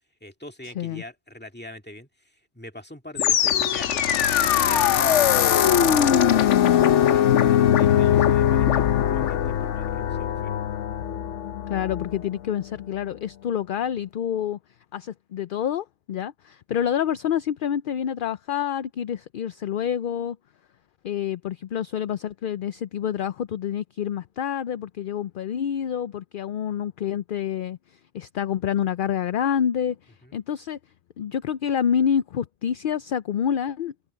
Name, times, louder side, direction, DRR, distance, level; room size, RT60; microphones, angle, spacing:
voice 1, 0.2-10.5 30.2-30.4, left 1 dB, 10° left, 2.1 m, -43 dB
sound 1, 3.2-12.3, left 9 dB, 80° left, 1.1 m, -20 dB
voice 2, 11.7-14.6 14.9-20.4 21.0-30.8 31.2-33.9, left 9 dB, 60° left, 0.6 m, -27 dB
omnidirectional pair, 1.2 m